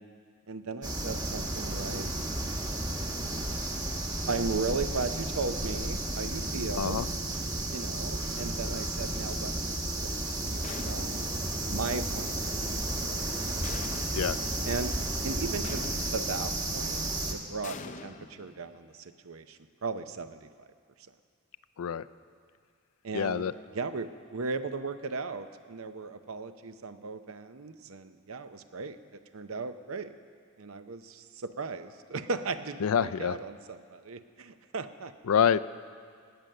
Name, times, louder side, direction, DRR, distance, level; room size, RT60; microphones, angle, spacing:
voice 1, 0.5-2.1 4.3-7.0 7.7-11.3 11.7-13.2 14.7-14.9 15.2-17.8 18.0-20.7 23.0-30.2 30.6-35.1, right 4 dB, 80° right, 10 dB, 0.7 m, -37 dB
sound 1, 0.8-17.3, right 1 dB, 20° right, 1.1 m, -33 dB
sound 2, 10.6-11.4 13.6-14.4 15.6-16.4 17.6-18.9, left 4 dB, 35° left, 0.5 m, -44 dB
voice 2, 23.1-23.5 32.8-33.4 35.3-35.6, left 7 dB, 90° left, 16 dB, 0.4 m, -26 dB
18.0 x 9.1 x 6.7 m, 2.1 s
head